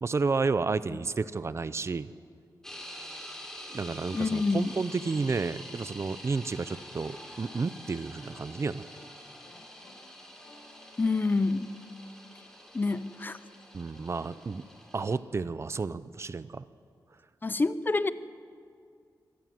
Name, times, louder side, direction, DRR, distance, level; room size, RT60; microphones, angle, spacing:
voice 1, 0.0-2.1 3.7-8.8 13.7-14.6 14.9-16.6, right 4 dB, 40° right, 15 dB, 0.6 m, -31 dB
sound 1, 2.6-15.2, equal, 5° left, 3.7 m, -47 dB
voice 2, 4.1-4.7 11.0-11.7 12.7-13.4 17.4-18.1, left 3 dB, 25° left, 14 dB, 0.6 m, -27 dB
sound 2, 6.7-6.8 7.4-7.6 8.2-8.4 8.9-9.1 9.4-9.9 10.4-12.7 13.9-14.4, left 2 dB, 80° left, 4.8 m, -58 dB
24.5 x 18.5 x 7.8 m, 2.3 s
wide cardioid pair, 125°, 7 cm